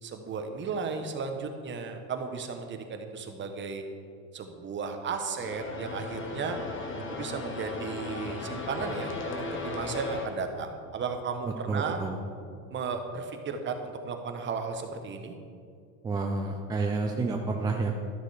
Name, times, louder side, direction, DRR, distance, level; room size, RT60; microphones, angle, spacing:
voice 1, 0.0-3.8 4.3-6.6 7.1-9.1 9.4-12.0 12.7-15.3, right 5 dB, 25° right, 6 dB, 1.1 m, -34 dB
sound 1, 5.4-10.3, left 3 dB, 30° left, 1.3 m, -36 dB
voice 2, 11.7-12.1 16.0-17.9, right 3 dB, 10° right, 2 dB, 0.3 m, -29 dB
12.5 x 6.6 x 4.9 m, 2.3 s
supercardioid pair, 120°, 42 cm